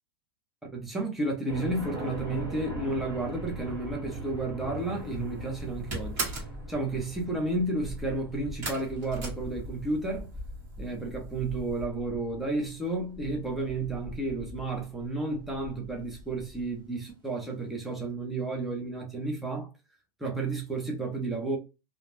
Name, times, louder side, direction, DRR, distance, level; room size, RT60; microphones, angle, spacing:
voice 1, 0.7-6.3 6.7-10.3 10.8-19.7 20.2-21.6, right 2 dB, ahead, 0.4 m, -32 dB
sound 1, 1.5-16.6, right 1 dB, 25° right, 1.4 m, -41 dB
sound 2, 4.9-5.3 5.5-6.6 8.6-10.1 10.4-11.0 11.3-11.4 11.8-11.9, right 3 dB, 50° right, 1.2 m, -36 dB
2.4 x 2.0 x 3.1 m
supercardioid pair, 175°, 12 cm